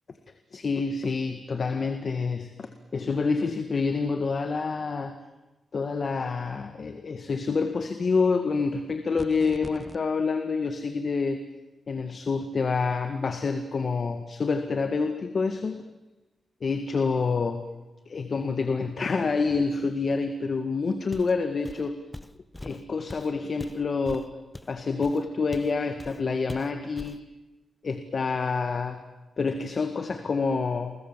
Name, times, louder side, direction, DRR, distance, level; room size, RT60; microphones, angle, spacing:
voice 1, 0.5-5.2 5.7-11.5 11.9-15.8 16.6-17.7 18.1-22.0 22.6-24.3 24.7-27.2 27.8-29.0 29.4-31.0, left 4 dB, 55° left, 8 dB, 1.9 m, -27 dB
sound 1, 9.2-10.0, equal, 5° right, 1.6 m, -41 dB
Walk footsteps, 21.1-21.4 21.6-25.7 26.0-26.2 26.5-27.2, left 1 dB, 15° left, 1.2 m, -42 dB
29.0 x 23.0 x 7.6 m, 1.1 s
cardioid pair, 65°, 0 cm